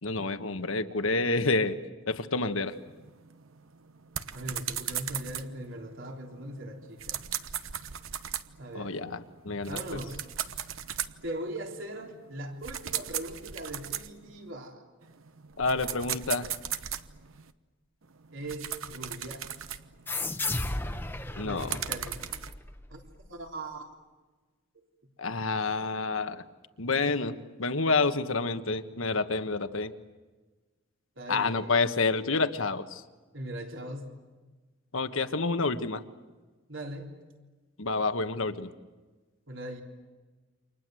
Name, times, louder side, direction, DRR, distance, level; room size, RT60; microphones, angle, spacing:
voice 1, 0.0-1.8 2.1-2.7 8.7-10.0 15.6-16.5 21.4-21.8 25.2-26.4 26.8-29.9 31.3-33.0 34.9-36.0 37.8-38.7, left 3 dB, 80° left, 9 dB, 1.4 m, -28 dB
sound 1, 2.7-14.5 15.0-17.5 18.0-22.5, right 10 dB, 85° right, 1.1 m, -38 dB
voice 2, 4.3-7.2 8.6-9.0 9.7-10.2 11.2-14.9 18.3-19.5 21.0-21.1 21.4-22.3 22.9-23.8 31.2-31.8 33.3-34.2 36.7-37.2 39.5-39.8, right 1 dB, 70° right, 2 dB, 3.6 m, -40 dB
sound 2, 20.1-23.3, left 2 dB, 10° left, 1.0 m, -34 dB
29.0 x 25.5 x 7.8 m, 1.3 s
head